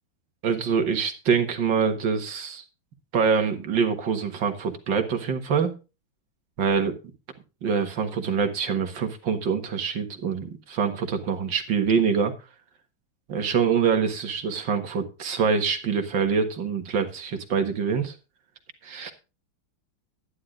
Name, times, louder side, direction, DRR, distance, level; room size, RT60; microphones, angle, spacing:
voice 1, 0.4-2.6 3.1-5.7 6.6-7.0 7.6-12.3 13.3-18.1 18.8-19.1, right 6 dB, 65° right, 6 dB, 2.3 m, -25 dB
11.5 x 11.0 x 3.8 m, 0.29 s
omnidirectional pair, 2.2 m